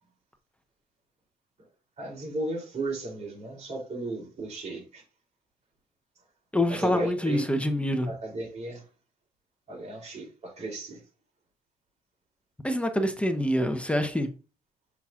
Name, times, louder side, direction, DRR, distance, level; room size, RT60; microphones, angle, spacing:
voice 1, 2.0-5.0 6.7-7.5 8.1-8.8 9.7-11.0, right 2 dB, 40° right, 3.3 m, -35 dB
voice 2, 6.5-8.1 12.6-14.3, left 1 dB, 5° left, 0.8 m, -26 dB
7.2 x 5.4 x 2.5 m
cardioid pair, 110°, 17 cm